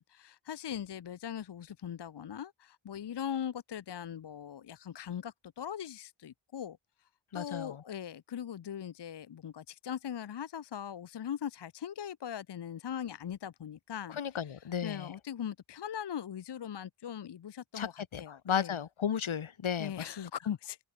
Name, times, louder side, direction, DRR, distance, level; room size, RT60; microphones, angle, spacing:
voice 1, 0.0-6.8 7.3-18.8 19.8-20.8, left 9 dB, 55° left, 0.7 m, -40 dB
voice 2, 7.3-7.8 14.2-15.1 17.7-20.3, left 8 dB, 75° left, 1.2 m, -34 dB
wide cardioid pair, 55°, 48 cm